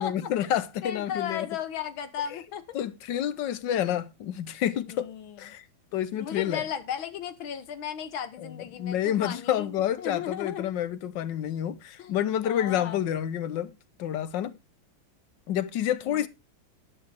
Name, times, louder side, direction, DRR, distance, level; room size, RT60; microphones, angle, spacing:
voice 1, 0.0-1.5 2.7-5.1 5.4-5.6 5.9-6.6 8.4-13.7 14.0-14.6 15.5-16.3, left 10 dB, 70° left, 1.5 m, -29 dB
voice 2, 0.8-2.8 4.9-5.4 6.2-10.7 12.0-12.1 12.4-13.0 16.0-16.3, left 8 dB, 85° left, 1.9 m, -35 dB
12.0 x 10.0 x 3.4 m
omnidirectional pair, 2.1 m